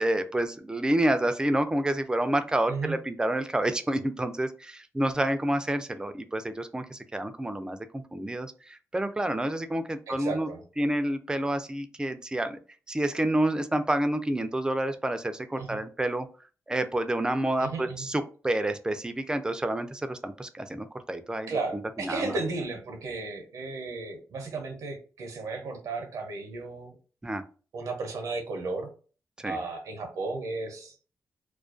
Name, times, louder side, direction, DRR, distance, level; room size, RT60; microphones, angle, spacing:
voice 1, 0.0-10.5 10.8-12.6 12.9-16.3 16.7-22.4 27.2-27.4 29.4-29.6, right 1 dB, 15° right, 9 dB, 0.3 m, -29 dB
voice 2, 10.1-10.6 15.6-15.8 17.6-18.1 21.5-27.0 27.7-28.9 29.4-30.9, right 3 dB, 75° right, 4 dB, 0.6 m, -34 dB
2.3 x 2.2 x 2.4 m, 0.38 s
cardioid pair, 75°, 6 cm